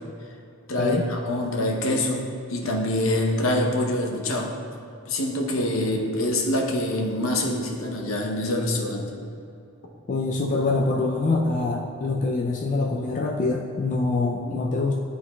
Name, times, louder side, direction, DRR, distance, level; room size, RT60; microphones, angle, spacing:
voice 1, 0.7-4.5 5.1-9.1, left 1 dB, 70° left, 1 dB, 0.8 m, -25 dB
voice 2, 10.1-14.9, left 3 dB, 40° left, -1 dB, 0.4 m, -25 dB
11.0 x 3.9 x 2.3 m, 2.6 s
head